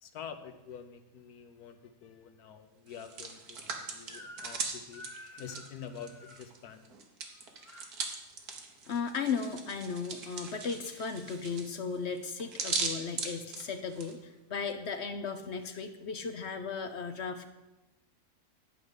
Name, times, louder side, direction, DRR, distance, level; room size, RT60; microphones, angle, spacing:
voice 1, 0.0-5.0 5.4-7.0, left 7 dB, 75° left, 9 dB, 1.2 m, -47 dB
Hands, 2.9-6.6 6.9-14.1, right 4 dB, 70° right, 1.7 m, -39 dB
Crying sobbing / Screech, 4.1-4.6 4.9-6.4 7.2-7.9, left 2 dB, 25° left, 0.8 m, -50 dB
voice 2, 8.9-17.5, left 5 dB, 55° left, 8 dB, 0.8 m, -36 dB
10.5 x 5.1 x 8.0 m, 1.0 s
omnidirectional pair, 1.7 m